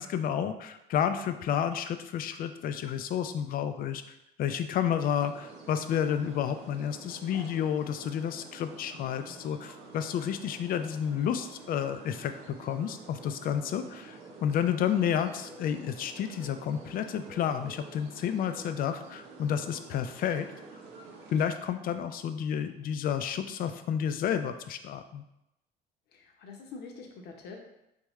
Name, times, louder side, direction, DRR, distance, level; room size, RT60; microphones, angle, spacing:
voice 1, 0.0-4.0 4.4-20.5 21.3-25.2, left 9 dB, 60° left, 9 dB, 0.4 m, -31 dB
sound 1, 5.2-21.4, right 3 dB, 90° right, 0.8 m, -49 dB
voice 2, 26.1-27.6, left 4 dB, 75° left, 2 dB, 0.9 m, -45 dB
4.5 x 3.5 x 3.1 m, 0.88 s
cardioid pair, 110°, 17 cm